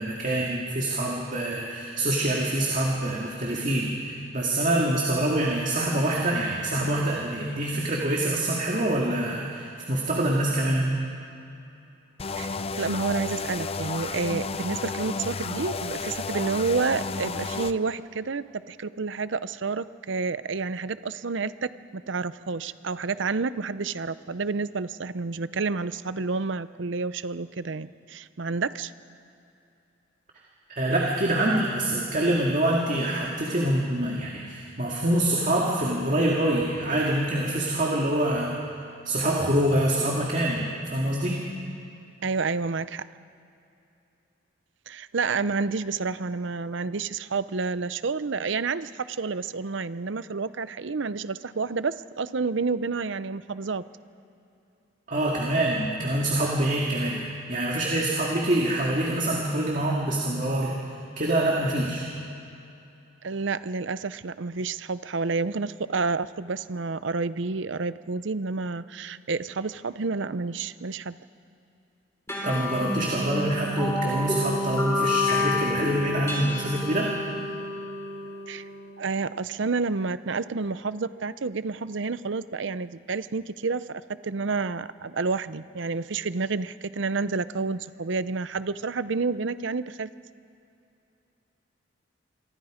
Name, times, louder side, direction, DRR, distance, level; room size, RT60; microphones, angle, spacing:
voice 1, 0.0-11.0 30.8-38.5 39.0-41.4 55.1-57.2 57.5-62.0 72.4-77.1, right 1 dB, 40° right, -2 dB, 2.2 m, -25 dB
sound 1, 12.2-17.7, left 4 dB, 30° left, 0.6 m, -32 dB
voice 2, 12.8-28.9 42.2-43.1 44.9-53.8 63.2-71.2 78.5-78.7 79.0-90.1, right 4 dB, 65° right, 15 dB, 0.6 m, -29 dB
sound 2, 72.3-79.2, left 2 dB, 15° left, 2.9 m, -29 dB
27.5 x 23.5 x 5.1 m, 2.7 s
head